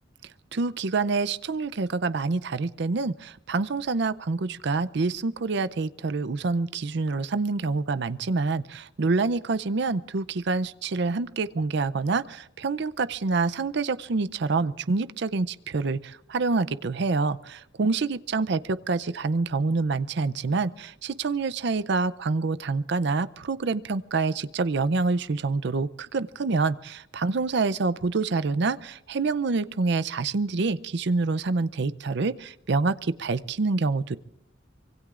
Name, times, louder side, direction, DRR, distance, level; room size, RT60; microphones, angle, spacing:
voice 1, 0.5-34.2, right 3 dB, 60° right, 14 dB, 0.5 m, -27 dB
25.0 x 23.5 x 2.5 m, 0.80 s
head